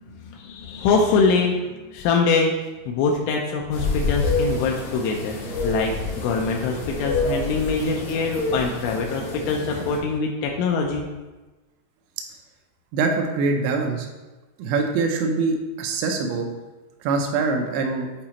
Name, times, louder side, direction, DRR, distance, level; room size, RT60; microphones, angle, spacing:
voice 1, 0.2-2.5 2.9-5.4 5.6-11.1, left 4 dB, 85° left, 0 dB, 3.0 m, -23 dB
sound 1, 3.7-10.0, left 2 dB, 70° left, 1.8 m, -27 dB
voice 2, 12.9-14.1 14.6-16.5 17.0-18.1, right 4 dB, 90° right, 3 dB, 2.4 m, -23 dB
8.7 x 4.1 x 2.9 m, 1.2 s
omnidirectional pair, 5.5 m